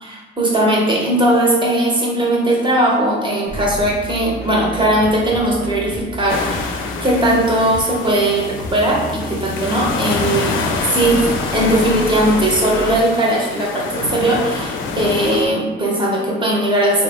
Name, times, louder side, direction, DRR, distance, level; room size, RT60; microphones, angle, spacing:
voice 1, 0.0-6.7 7.0-10.6 10.9-17.0, right 1 dB, 25° right, -2 dB, 0.9 m, -18 dB
sound 1, 3.5-13.0, right 1 dB, 50° right, 0.9 m, -31 dB
sound 2, 6.3-15.4, left 4 dB, 90° left, 0.4 m, -26 dB
3.3 x 2.1 x 3.4 m, 1.2 s
cardioid pair, 90°, 20 cm